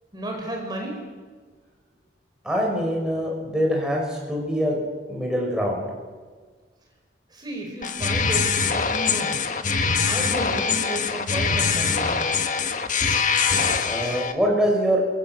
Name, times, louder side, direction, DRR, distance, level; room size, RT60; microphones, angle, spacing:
voice 1, 0.1-1.0 7.3-9.4 10.1-12.3, right 1 dB, 25° right, 1 dB, 5.4 m, -32 dB
voice 2, 2.4-4.8 5.1-5.9 13.8-15.0, equal, 5° right, -2 dB, 5.7 m, -24 dB
sound 1, 7.8-14.3, left 5 dB, 45° left, 1.6 m, -23 dB
27.0 x 22.5 x 7.9 m, 1.5 s
head